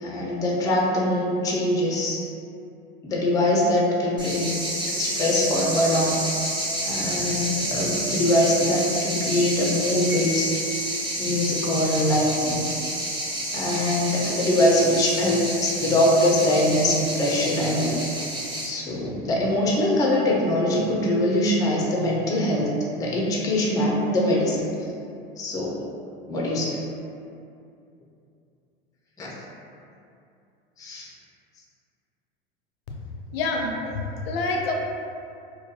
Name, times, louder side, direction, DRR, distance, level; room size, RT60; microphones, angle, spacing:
voice 1, 0.0-2.2 3.0-4.5 5.0-6.2 6.8-10.6 11.2-12.6 13.5-18.0 18.6-24.7 25.4-25.8 26.3-26.8 29.2-29.3 30.8-31.1, left 1 dB, 10° left, -3 dB, 0.3 m, -23 dB
sound 1, 4.2-18.7, right 1 dB, 15° right, 0.8 m, -29 dB
Piano, 10.1-11.2, left 2 dB, 75° right, 0.9 m, -37 dB
voice 2, 33.3-34.7, left 3 dB, 75° left, 0 dB, 0.5 m, -27 dB
2.3 x 2.2 x 2.6 m, 2.5 s
hypercardioid pair, 95°, 30 cm